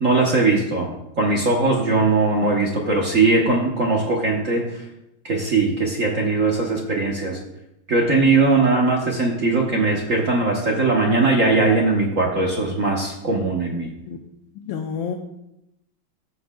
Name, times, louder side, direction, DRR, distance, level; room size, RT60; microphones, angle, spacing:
voice 1, 0.0-4.8 5.2-7.4 7.9-13.9, right 3 dB, 50° right, -1 dB, 1.2 m, -20 dB
voice 2, 14.5-15.2, left 7 dB, 80° left, 4 dB, 1.4 m, -29 dB
14.0 x 7.8 x 2.2 m, 0.87 s
omnidirectional pair, 2.1 m